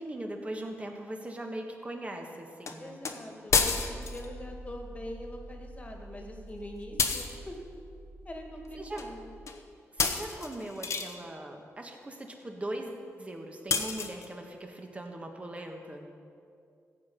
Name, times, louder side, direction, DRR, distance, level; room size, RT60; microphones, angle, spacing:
voice 1, 0.0-3.0 8.8-9.0 10.0-16.1, right 1 dB, 25° right, 3 dB, 1.6 m, -40 dB
sound 1, 2.7-2.8 3.0-3.1 3.5-4.3 7.0-7.4 9.0-9.1 9.5-9.6 10.0-11.2 13.7-14.3, left 5 dB, 65° left, 1.0 m, -29 dB
voice 2, 2.8-7.6 8.2-9.4, left 1 dB, 25° left, 2 dB, 1.9 m, -43 dB
sound 2, 3.5-9.5, right 1 dB, 45° right, 1.7 m, -47 dB
15.0 x 8.3 x 5.3 m, 2.4 s
cardioid pair, 90°, 6 cm